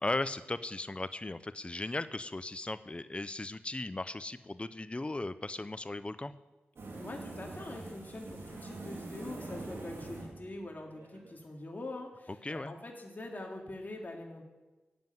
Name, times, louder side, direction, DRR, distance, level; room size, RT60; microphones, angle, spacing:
voice 1, 0.0-6.3 12.4-12.8, left 2 dB, 25° left, 13 dB, 0.6 m, -37 dB
sound 1, 6.8-11.4, right 2 dB, 75° right, 3.0 m, -44 dB
voice 2, 7.0-14.5, left 2 dB, 45° left, 0 dB, 2.3 m, -44 dB
11.5 x 7.7 x 9.3 m, 1.1 s
cardioid pair, 45°, 4 cm